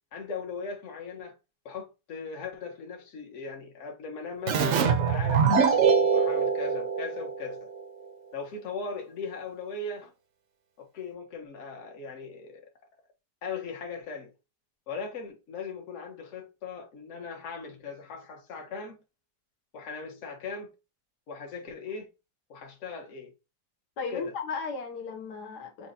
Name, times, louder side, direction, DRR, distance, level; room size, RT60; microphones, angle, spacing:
voice 1, 0.1-1.4 1.6-7.7 8.3-10.1 10.8-12.7 13.4-14.3 14.9-19.0 19.7-20.7 21.3-22.1 22.5-23.3 24.1-24.3, left 4 dB, 50° left, 1.3 m, -38 dB
Keyboard (musical), 4.5-7.8, right 6 dB, 60° right, 0.8 m, -24 dB
voice 2, 24.0-25.9, left 4 dB, 80° left, 1.5 m, -35 dB
6.3 x 2.8 x 2.7 m
omnidirectional pair, 1.7 m